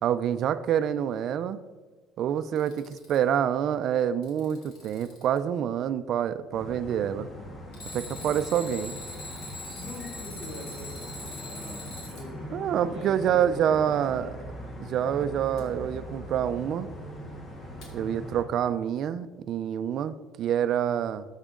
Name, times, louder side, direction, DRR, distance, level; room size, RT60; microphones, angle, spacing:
voice 1, 0.0-1.6 2.2-7.3 7.9-9.0 12.5-14.3 14.8-16.9 17.9-21.3, right 9 dB, 55° right, 12 dB, 0.5 m, -27 dB
Alarm, 2.4-3.4 4.0-5.4 7.7-12.3 15.6-15.7 17.8-17.9, left 1 dB, 60° left, 3.2 m, -42 dB
sound 1, 6.5-18.4, equal, 25° left, 1.9 m, -41 dB
voice 2, 9.8-12.5 12.8-14.3, left 1 dB, 45° left, 2 dB, 2.4 m, -44 dB
13.5 x 7.4 x 3.8 m, 1.3 s
cardioid pair, 135°, 0 cm